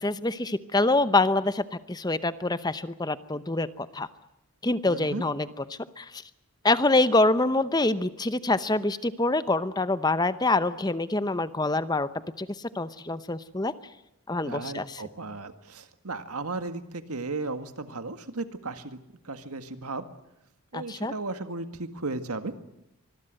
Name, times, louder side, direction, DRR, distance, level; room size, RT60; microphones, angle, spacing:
voice 1, 0.0-4.1 4.6-6.2 6.6-12.1 12.4-12.5 12.7-13.7 14.3-15.0 20.7-21.1, left 2 dB, 20° left, 14 dB, 0.8 m, -25 dB
voice 2, 4.8-5.2 14.4-19.0 19.3-20.0 20.7-22.5, right 3 dB, 90° right, 9 dB, 1.9 m, -35 dB
25.0 x 21.0 x 7.7 m, 0.86 s
head